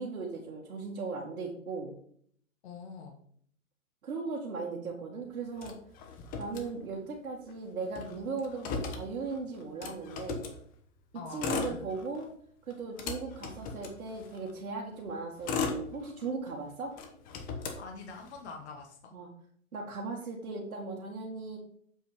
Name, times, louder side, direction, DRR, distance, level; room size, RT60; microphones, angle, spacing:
voice 1, 0.0-1.9 4.0-5.7 6.4-10.4 11.3-12.3 12.7-16.9 19.1-19.3 19.7-21.6, right 4 dB, 75° right, -3 dB, 2.1 m, -38 dB
voice 2, 2.6-3.2 6.2-6.3 11.1-11.8 17.8-19.1, left 4 dB, 50° left, 3 dB, 1.6 m, -45 dB
Motor vehicle (road), 5.6-7.2 7.5-7.6 7.8-10.6 11.2-12.3 12.7-14.5 15.1-16.5 16.9-18.5, left 4 dB, 20° left, 1.0 m, -37 dB
7.6 x 5.6 x 5.1 m, 0.62 s
hypercardioid pair, 135°, 42 cm